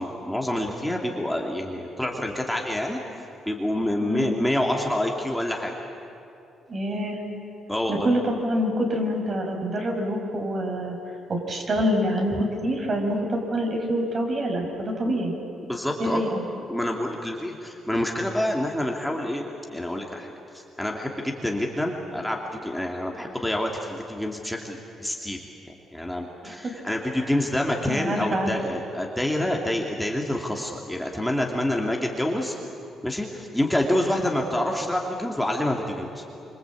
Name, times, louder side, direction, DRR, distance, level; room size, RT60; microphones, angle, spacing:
voice 1, 0.0-3.0 3.5-5.7 7.7-8.1 15.1-15.2 15.6-16.2 16.7-25.4 25.9-32.5 33.0-36.2, left 1 dB, 5° left, 0 dB, 2.7 m, -27 dB
voice 2, 4.0-4.3 6.7-7.2 7.9-11.0 11.3-15.3 16.0-16.4 26.4-26.7 27.1-27.2 27.9-28.6, equal, 45° right, 2 dB, 5.7 m, -26 dB
26.0 x 25.5 x 8.5 m, 2.7 s
cardioid pair, 90°, 0 cm